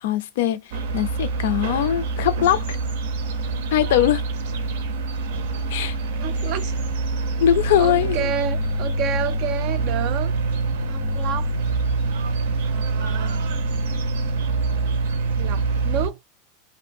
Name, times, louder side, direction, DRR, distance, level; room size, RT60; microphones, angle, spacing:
voice 1, 0.0-2.8 3.7-4.3 5.7-5.9 7.4-8.3, left 11 dB, 70° left, 0.4 m, -21 dB
sound 1, 0.7-16.1, right 3 dB, 80° right, 0.6 m, -25 dB
voice 2, 6.2-6.7 7.8-10.3 10.9-11.5 12.6-13.4 15.4-16.2, right 9 dB, 40° right, 0.3 m, -30 dB
2.5 x 2.2 x 2.5 m
supercardioid pair, 170°, 0 cm